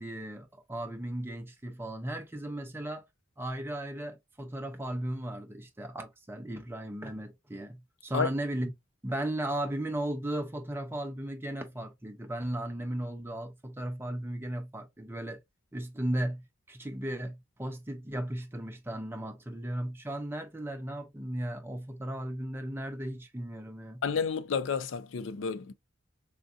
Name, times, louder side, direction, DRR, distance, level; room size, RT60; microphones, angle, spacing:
voice 1, 0.0-3.0 3.4-8.7 9.0-15.4 15.7-24.0, right 1 dB, 10° right, 0.6 m, -36 dB
voice 2, 24.0-25.7, left 6 dB, 65° left, 0.4 m, -30 dB
3.7 x 2.6 x 2.3 m
head